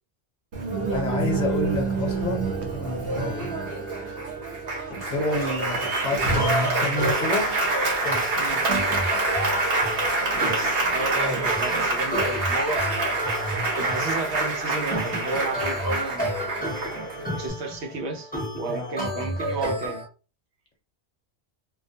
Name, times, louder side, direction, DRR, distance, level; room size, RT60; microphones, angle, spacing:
Applause, 0.5-17.5, right 2 dB, 65° right, 1.0 m, -26 dB
voice 1, 0.9-3.7 4.9-7.5 8.0-8.4 18.7-18.9, left 2 dB, 45° left, 0.9 m, -29 dB
sound 1, 6.3-20.0, equal, 10° left, 0.7 m, -32 dB
voice 2, 10.2-13.3 13.7-16.5 17.3-20.0, right 3 dB, 90° right, 0.9 m, -32 dB
2.4 x 2.1 x 2.6 m
omnidirectional pair, 1.1 m